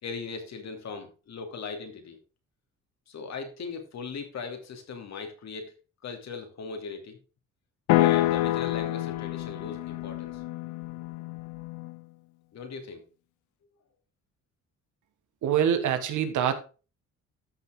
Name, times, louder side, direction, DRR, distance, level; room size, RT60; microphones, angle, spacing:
voice 1, 0.0-2.2 3.1-5.7 6.0-7.2 7.9-10.4 12.5-13.0, left 5 dB, 60° left, 2.9 m, -39 dB
sound 1, 7.9-12.0, left 16 dB, 90° left, 0.7 m, -27 dB
voice 2, 15.4-16.5, right 9 dB, 80° right, 1.7 m, -25 dB
13.0 x 6.0 x 3.8 m
cardioid pair, 90°, 30 cm